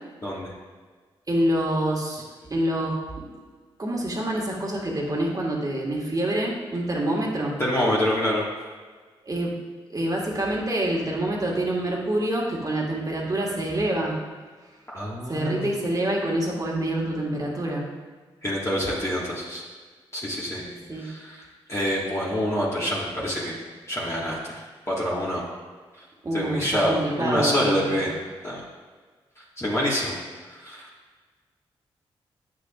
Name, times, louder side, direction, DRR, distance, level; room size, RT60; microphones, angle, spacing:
voice 1, 0.2-0.5 7.6-8.4 14.9-15.7 18.4-19.6 20.1-20.7 21.0-21.4 21.7-23.6 23.9-24.6 24.9-25.4 26.3-28.1 28.4-28.6 29.6-30.1 30.6-30.9, equal, 25° left, -7 dB, 1.7 m, -26 dB
voice 2, 1.3-2.2 2.5-3.3 3.8-7.6 9.2-9.6 9.9-14.2 15.3-17.8 20.7-21.1 26.2-28.0, right 1 dB, 35° right, -2 dB, 1.6 m, -26 dB
8.5 x 6.2 x 2.4 m, 1.5 s
supercardioid pair, 45°, 11 cm